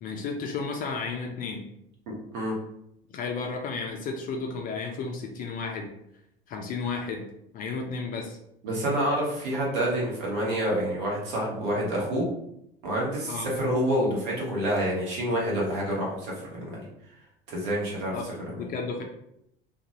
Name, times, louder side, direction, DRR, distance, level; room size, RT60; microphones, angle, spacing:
voice 1, 0.0-1.6 3.1-5.9 6.5-7.2 7.5-8.4 13.3-13.5 18.1-19.0, left 4 dB, 30° left, 3 dB, 0.4 m, -33 dB
voice 2, 2.1-2.5 8.6-12.3 12.8-16.8 17.5-18.7, right 1 dB, 55° right, -3 dB, 1.1 m, -28 dB
2.5 x 2.2 x 2.8 m, 0.77 s
figure-of-eight pair, 70°, 29 cm